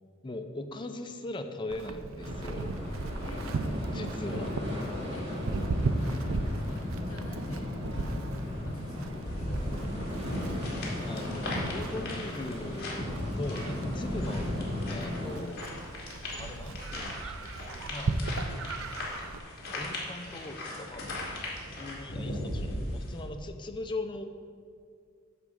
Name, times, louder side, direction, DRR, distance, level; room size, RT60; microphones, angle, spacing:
voice 1, 0.2-2.7 3.9-4.6 11.0-14.5 14.9-15.7 16.4-17.4 17.7-18.2 19.7-21.1 21.7-24.3, left 2 dB, 20° left, 6 dB, 0.5 m, -40 dB
Livestock farm animals working animals, 1.7-19.4, right 3 dB, 70° right, 0.5 m, -37 dB
sound 1, 2.2-15.4, left 1 dB, 25° right, 1.9 m, -36 dB
voice 2, 6.0-8.2 8.7-9.9 14.2-14.4, left 1 dB, 80° left, 2 dB, 1.0 m, -46 dB
sound 2, 9.3-23.2, left 1 dB, 50° left, 2.0 m, -38 dB
10.5 x 3.6 x 7.1 m, 2.2 s
head